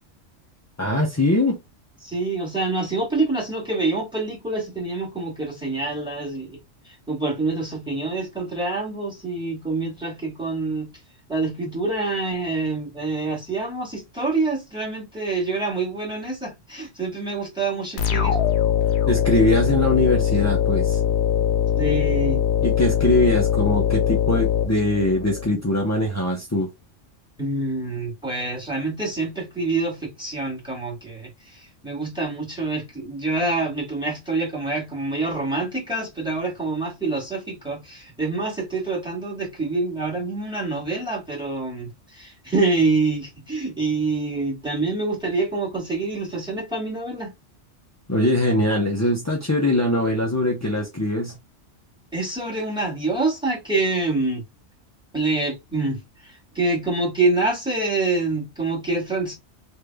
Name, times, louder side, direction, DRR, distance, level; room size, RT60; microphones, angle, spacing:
voice 1, 0.8-1.6 19.1-21.0 22.6-26.7 48.1-51.4, left 1 dB, 20° left, 0.5 m, -22 dB
voice 2, 2.0-6.6 6.9-10.9 11.3-18.4 21.8-22.4 27.4-47.3 52.1-54.4 55.1-59.3, right 3 dB, 5° right, 1.9 m, -26 dB
sound 1, 18.0-25.5, left 9 dB, 60° left, 0.9 m, -21 dB
3.2 x 2.7 x 3.4 m
omnidirectional pair, 1.3 m